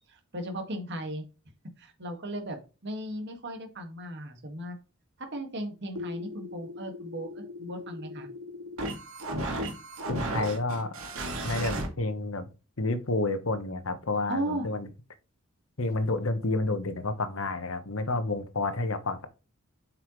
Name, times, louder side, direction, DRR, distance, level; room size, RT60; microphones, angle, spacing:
voice 1, 0.1-1.3 1.8-4.8 5.2-8.3 14.3-14.7, right 1 dB, 55° right, 1.9 m, -36 dB
sound 1, 5.9-11.9, right 1 dB, 75° right, 2.4 m, -35 dB
voice 2, 10.1-11.0 11.4-12.5 12.8-14.9 15.8-19.3, left 2 dB, 70° left, 1.2 m, -30 dB
8.0 x 5.7 x 3.2 m
head